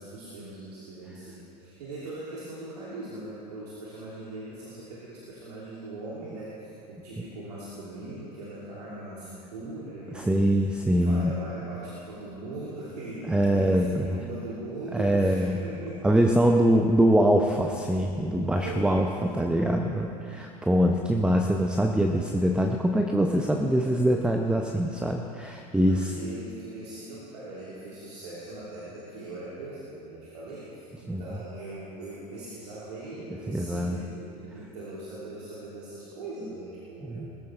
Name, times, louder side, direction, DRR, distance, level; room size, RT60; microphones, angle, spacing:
voice 1, 0.0-10.4 10.9-16.2 18.5-19.3 20.0-20.5 25.8-37.3, right 2 dB, 70° right, -8 dB, 2.9 m, -40 dB
voice 2, 10.1-11.3 13.3-14.2 14.9-15.6 16.0-26.1 31.1-31.2 33.5-34.0 37.0-37.3, equal, 5° right, 3 dB, 0.8 m, -23 dB
20.5 x 14.0 x 3.4 m, 2.6 s
figure-of-eight pair, 75°, 21 cm